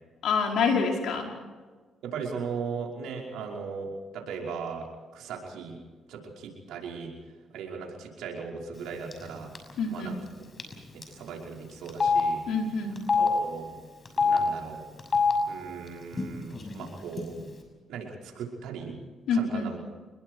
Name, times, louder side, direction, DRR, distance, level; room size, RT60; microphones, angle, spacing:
voice 1, 0.2-1.3 9.8-10.2 12.5-13.0 19.3-19.7, left 4 dB, 75° left, 1 dB, 5.2 m, -26 dB
voice 2, 2.0-5.8 6.1-7.1 7.5-9.5 9.9-10.2 10.9-12.4 13.2-13.7 14.2-14.8 15.5-17.4 17.9-19.0 19.3-19.8, right 5 dB, 85° right, 0 dB, 5.4 m, -38 dB
Telephone, 9.1-9.3 9.6-9.7 10.6-10.7 11.0-11.1 11.9-12.2 13.0-13.3 14.1-14.4 15.0-15.3 16.1-16.2 16.5-17.2, left 5 dB, 35° left, 6.3 m, -24 dB
28.0 x 21.5 x 4.8 m, 1.4 s
cardioid pair, 90°, 0 cm